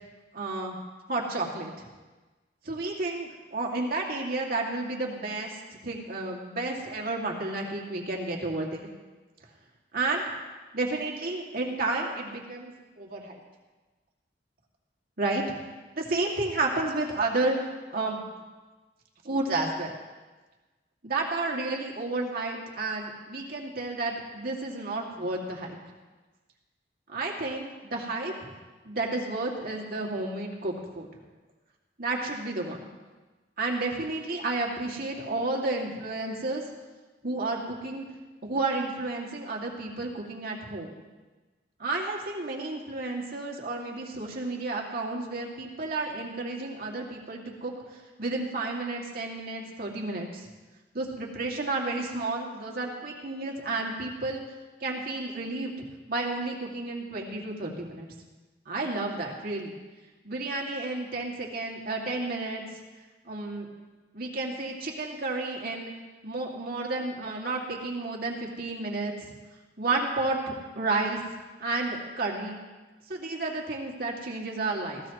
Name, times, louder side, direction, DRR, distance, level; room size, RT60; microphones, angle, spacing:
voice 1, 0.3-0.8 1.1-1.9 2.6-8.9 9.9-10.3 10.7-13.4 15.2-15.4 16.0-17.6 17.9-18.2 19.2-19.9 21.0-25.8 27.1-28.5 28.8-31.1 32.0-32.8 33.6-36.6 37.2-38.0 38.4-40.9 41.8-50.5 50.9-54.4 54.8-58.1 58.7-59.8 60.2-62.6 63.2-63.7 64.1-65.9 66.2-69.3 69.8-71.2 71.6-72.6 73.1-75.0, right 2 dB, 55° right, -1 dB, 2.3 m, -31 dB
19.0 x 16.0 x 3.1 m, 1.3 s
head